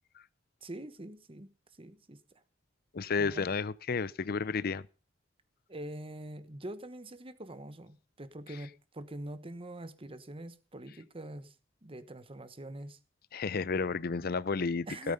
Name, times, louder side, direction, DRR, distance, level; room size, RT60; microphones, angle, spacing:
voice 1, 0.6-1.5 1.8-2.4 3.2-3.5 5.7-11.5 11.8-13.0 14.9-15.1, right 1 dB, 30° right, 1.1 m, -44 dB
voice 2, 2.9-4.9 13.3-15.1, left 4 dB, 50° left, 0.6 m, -32 dB
17.0 x 9.1 x 5.4 m
head